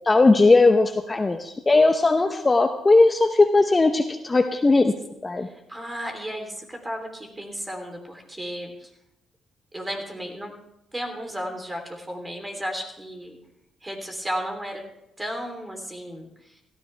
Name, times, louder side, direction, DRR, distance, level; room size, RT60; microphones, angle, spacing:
voice 1, 0.1-4.9 5.2-5.5, left 3 dB, 25° left, 6 dB, 0.8 m, -18 dB
voice 2, 5.4-8.9 9.7-10.5 10.9-13.4 13.8-14.8 15.2-16.6, equal, 15° right, 3 dB, 3.3 m, -34 dB
17.0 x 14.0 x 3.4 m, 0.86 s
cardioid pair, 90°, 0 cm